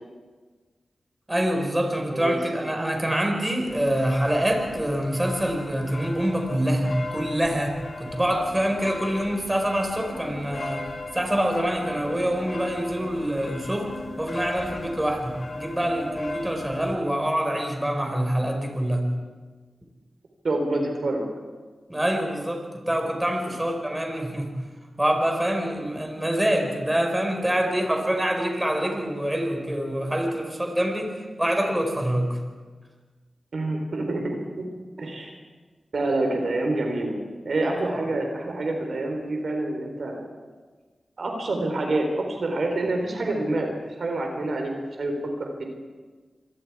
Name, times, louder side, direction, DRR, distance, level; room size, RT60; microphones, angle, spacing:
voice 1, 1.3-10.9 11.1-19.1 21.9-24.5 25.0-31.1 31.4-32.4 37.8-38.0, right 1 dB, 15° right, 3 dB, 5.0 m, -25 dB
sound 1, 3.7-17.0, left 2 dB, 60° left, 2.8 m, -37 dB
voice 2, 20.4-21.3 33.5-34.7 35.0-35.3 35.9-37.2 37.4-40.3 41.2-44.7 45.0-45.6, right 2 dB, 70° right, 3 dB, 3.8 m, -27 dB
27.0 x 22.0 x 4.8 m, 1.4 s
cardioid pair, 55°, 0 cm